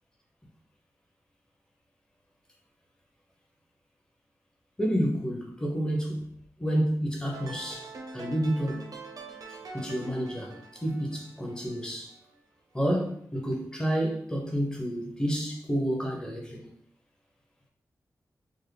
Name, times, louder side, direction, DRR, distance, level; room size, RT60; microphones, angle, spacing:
voice 1, 4.8-6.3 6.6-8.9 9.7-12.1 12.7-16.7, equal, 10° left, 0.9 m, -30 dB
sound 1, 7.3-12.4, right 3 dB, 70° right, 0.7 m, -45 dB
3.6 x 2.1 x 3.3 m
cardioid pair, 65°, 7 cm